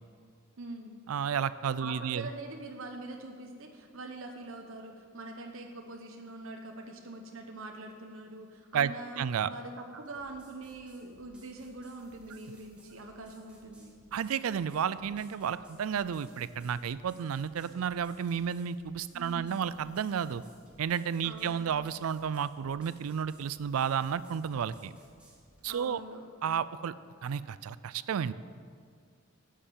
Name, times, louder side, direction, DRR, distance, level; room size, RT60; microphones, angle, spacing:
voice 1, 0.6-1.0 1.8-13.9 19.1-19.6 21.2-21.7 25.7-26.3, right 2 dB, 70° right, 3 dB, 0.9 m, -44 dB
voice 2, 1.1-2.3 8.7-8.9 9.2-9.5 14.1-20.4 20.8-24.9 25.6-26.0 26.4-26.9 27.2-28.3, right 7 dB, 85° right, 16 dB, 0.4 m, -32 dB
sound 1, 10.0-25.9, right 1 dB, 5° right, 2.0 m, -61 dB
10.5 x 6.6 x 7.4 m, 2.1 s
head